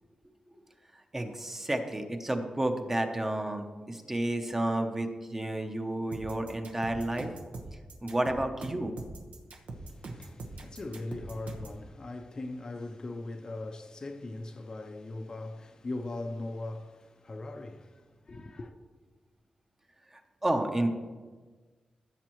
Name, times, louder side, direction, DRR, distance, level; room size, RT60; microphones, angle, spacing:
voice 1, 1.1-7.3 8.0-8.9 20.4-20.9, right 1 dB, 15° right, 0.7 m, -31 dB
sound 1, 6.1-11.8, right 2 dB, 90° right, 1.1 m, -42 dB
voice 2, 9.7-18.7, left 2 dB, 35° left, 0.5 m, -40 dB
15.0 x 7.2 x 3.0 m
wide cardioid pair, 165°, 2 cm